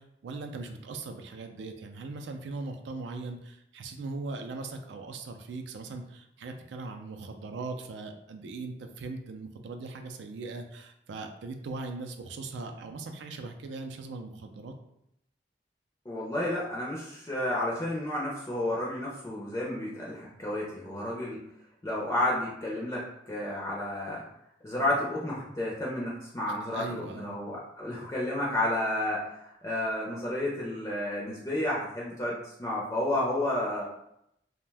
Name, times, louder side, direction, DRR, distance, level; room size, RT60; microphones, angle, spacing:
voice 1, 0.0-14.7 26.6-27.4, right 3 dB, 90° right, 5 dB, 0.4 m, -39 dB
voice 2, 16.1-21.4 21.8-24.2 24.6-33.8, left 1 dB, 20° left, -5 dB, 0.4 m, -31 dB
2.5 x 2.1 x 3.3 m, 0.79 s
head